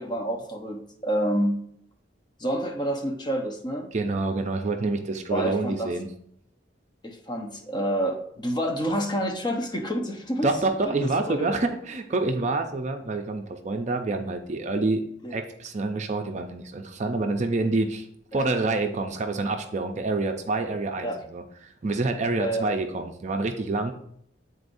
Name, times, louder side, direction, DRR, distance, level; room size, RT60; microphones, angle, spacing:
voice 1, 0.0-1.6 2.4-3.9 5.3-5.9 7.0-10.5 10.8-11.5 15.2-15.3 18.3-18.4 21.0-21.2 22.4-22.7, equal, 25° left, 3 dB, 0.7 m, -28 dB
voice 2, 3.9-6.1 10.4-15.0 15.3-18.1 18.3-23.9, right 3 dB, 40° right, 5 dB, 0.5 m, -27 dB
9.5 x 4.1 x 2.6 m, 0.69 s
head